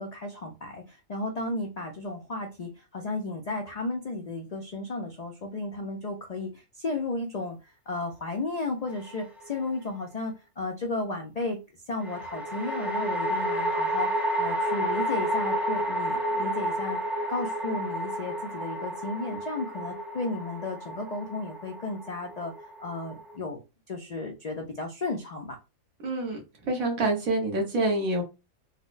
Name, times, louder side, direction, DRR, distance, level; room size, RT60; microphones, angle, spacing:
voice 1, 0.0-11.6 11.9-17.0 17.3-22.5 22.8-23.6 23.9-25.6, left 3 dB, 80° left, 3 dB, 0.3 m, -34 dB
sound 1, 8.9-9.6 12.0-23.4, right 1 dB, ahead, 0.5 m, -31 dB
voice 2, 26.0-28.2, right 2 dB, 90° right, 1 dB, 1.5 m, -27 dB
4.0 x 2.0 x 2.4 m, 0.27 s
omnidirectional pair, 1.4 m